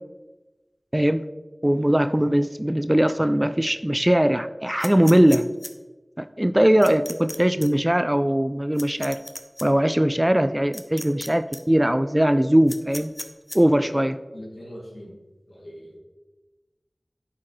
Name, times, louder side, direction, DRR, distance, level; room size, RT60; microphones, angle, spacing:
voice 1, 0.9-1.2 1.6-5.5 6.2-9.2 9.6-13.1 13.5-14.2, right 1 dB, 20° right, 11 dB, 0.3 m, -20 dB
sound 1, 4.8-5.7 6.8-7.4 7.6-7.7 8.8-9.6 10.7-11.3 11.5-11.6 12.7-13.6, left 1 dB, 30° left, 0.7 m, -35 dB
voice 2, 14.3-15.2 15.5-16.0, equal, 65° left, -4 dB, 2.5 m, -41 dB
11.0 x 4.4 x 3.1 m, 1.2 s
wide cardioid pair, 45°, 0 cm